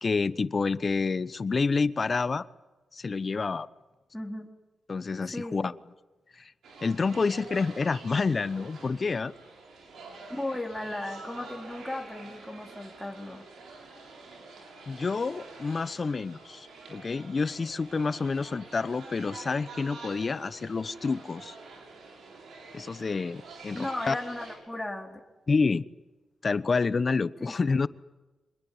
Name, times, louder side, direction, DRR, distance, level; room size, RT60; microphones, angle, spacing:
voice 1, 0.0-2.5 2.9-3.7 4.9-5.7 6.4-6.5 6.8-9.3 14.9-21.5 22.7-24.1 25.5-25.8 26.4-27.9, left 4 dB, 45° left, 16 dB, 1.1 m, -28 dB
voice 2, 4.1-4.5 5.3-5.6 10.3-13.4 23.7-25.2 27.4-27.5, left 1 dB, 10° left, 2 dB, 3.9 m, -36 dB
sound 1, 6.6-24.6, right 3 dB, 85° right, 6.7 m, -47 dB
26.0 x 21.0 x 9.8 m, 1.2 s
cardioid pair, 65°, 0 cm